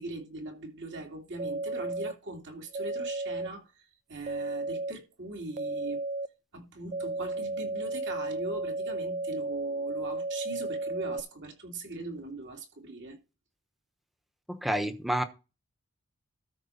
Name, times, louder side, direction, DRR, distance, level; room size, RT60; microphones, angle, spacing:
voice 1, 0.0-3.7 4.1-6.0 6.5-13.2, right 2 dB, 55° right, 2.6 m, -40 dB
sound 1, 1.4-2.1 2.7-3.5 4.3-4.9 5.5-6.3 6.9-11.2, right 2 dB, 30° right, 0.4 m, -33 dB
voice 2, 14.5-15.2, right 1 dB, ahead, 1.0 m, -29 dB
13.0 x 4.4 x 5.8 m
head